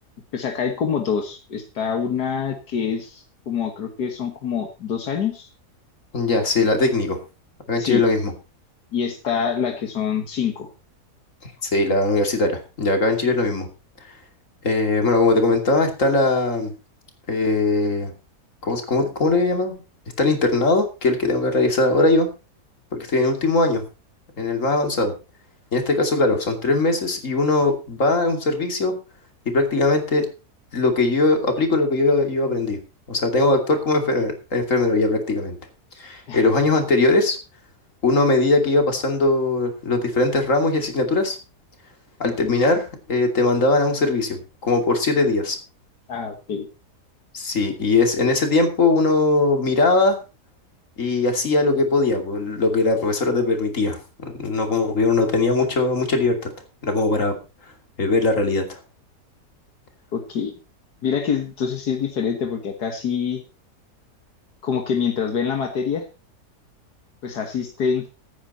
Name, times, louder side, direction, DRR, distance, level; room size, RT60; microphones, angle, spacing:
voice 1, 0.3-5.5 7.8-8.0 8.9-10.7 36.3-36.4 42.2-42.6 46.1-46.7 60.1-60.5 61.0-63.4 64.6-66.1 67.2-68.1, left 7 dB, 80° left, 5 dB, 2.0 m, -25 dB
voice 2, 6.1-7.2 7.7-8.3 11.6-13.7 14.6-16.7 17.3-18.1 18.6-19.8 20.2-22.3 22.9-23.8 24.4-25.1 25.7-28.9 29.5-30.3 30.7-32.8 33.1-35.6 36.0-37.4 38.0-41.4 42.2-44.4 44.6-45.6 47.3-50.2 51.0-56.4 56.8-57.3 58.0-58.8, left 2 dB, 50° left, 5 dB, 3.1 m, -20 dB
15.5 x 9.5 x 4.1 m, 0.30 s
omnidirectional pair, 1.7 m